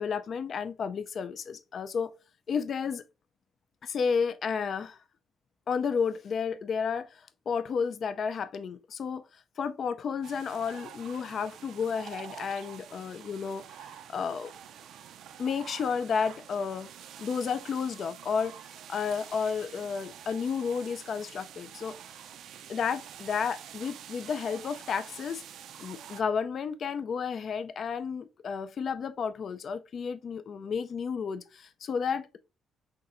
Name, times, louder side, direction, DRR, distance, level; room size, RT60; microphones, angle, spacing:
voice 1, 0.0-2.1 2.5-3.0 3.8-5.0 5.7-13.6 14.1-14.5 15.4-16.9 17.2-18.5 18.9-22.0 22.7-25.4 25.8-32.4, left 6 dB, 55° left, 0.3 m, -32 dB
sound 1, 10.2-26.2, right 9 dB, 75° right, 0.4 m, -47 dB
5.8 x 2.7 x 2.5 m
cardioid pair, 90°, 0 cm